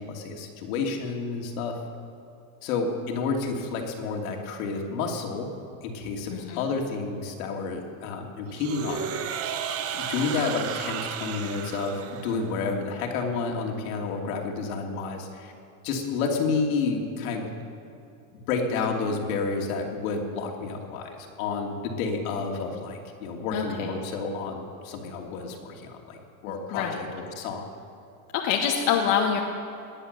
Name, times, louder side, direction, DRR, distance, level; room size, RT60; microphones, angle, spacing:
voice 1, 0.0-1.8 2.6-5.5 5.8-15.5 15.8-17.5 18.3-27.7, left 4 dB, 70° left, 1 dB, 2.7 m, -30 dB
voice 2, 6.3-6.6 23.5-23.9 26.7-27.0 28.3-29.4, left 8 dB, 45° left, 0 dB, 1.6 m, -25 dB
sound 1, 8.5-12.6, right 8 dB, 35° right, 0.9 m, -33 dB
19.0 x 10.0 x 6.6 m, 2.7 s
supercardioid pair, 135°, 43 cm